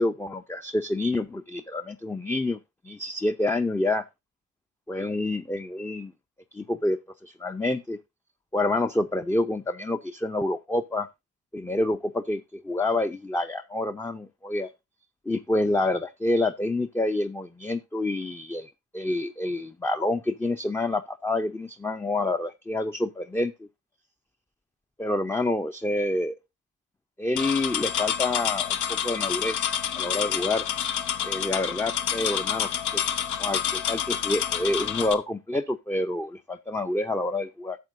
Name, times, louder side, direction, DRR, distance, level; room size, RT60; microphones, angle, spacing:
voice 1, 0.0-4.0 4.9-6.1 6.5-8.0 8.5-11.1 11.5-14.7 15.3-23.7 25.0-26.4 27.2-30.6 31.2-33.0 33.4-37.8, left 2 dB, 10° left, 7 dB, 0.5 m, -28 dB
sound 1, 27.4-35.1, left 9 dB, 80° left, 0.9 m, -28 dB
12.0 x 7.4 x 2.5 m, 0.23 s
cardioid pair, 90°, 30 cm